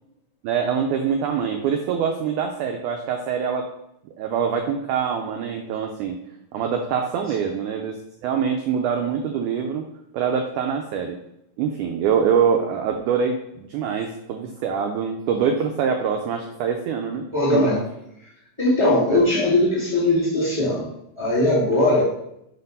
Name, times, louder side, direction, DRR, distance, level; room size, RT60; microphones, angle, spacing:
voice 1, 0.4-3.7 4.2-6.2 6.5-9.9 10.1-11.2 11.6-17.2 17.5-17.7 19.1-19.3, right 7 dB, 90° right, 4 dB, 1.7 m, -24 dB
voice 2, 17.3-17.8 18.6-20.9 21.2-22.0, left 1 dB, 15° right, -8 dB, 1.2 m, -19 dB
4.9 x 4.3 x 5.3 m, 0.79 s
omnidirectional pair, 4.2 m